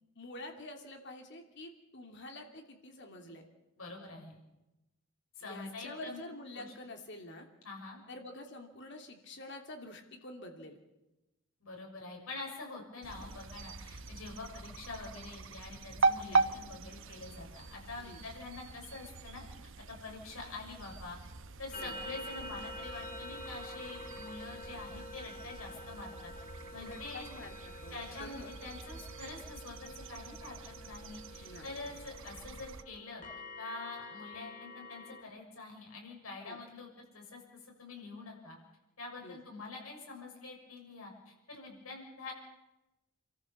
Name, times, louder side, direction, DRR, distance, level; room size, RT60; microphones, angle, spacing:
voice 1, 0.1-3.4 5.4-7.5 8.1-10.8 16.2-16.4 18.0-18.2 21.7-22.0 26.8-28.5 31.4-31.8 36.4-36.6 39.2-39.4, left 1 dB, 55° left, 4 dB, 2.9 m, -47 dB
voice 2, 3.8-4.4 5.4-6.2 6.5-6.7 7.6-8.0 11.6-21.2 21.6-26.3 26.7-27.3 27.9-33.2 33.6-37.4 37.8-38.6 39.0-42.3, left 3 dB, 75° left, 0 dB, 6.4 m, -46 dB
sound 1, 13.0-32.8, right 3 dB, 60° right, 0.9 m, -40 dB
sound 2, 21.7-35.2, left 1 dB, 35° left, 2.0 m, -48 dB
28.0 x 14.0 x 7.3 m, 1.0 s
head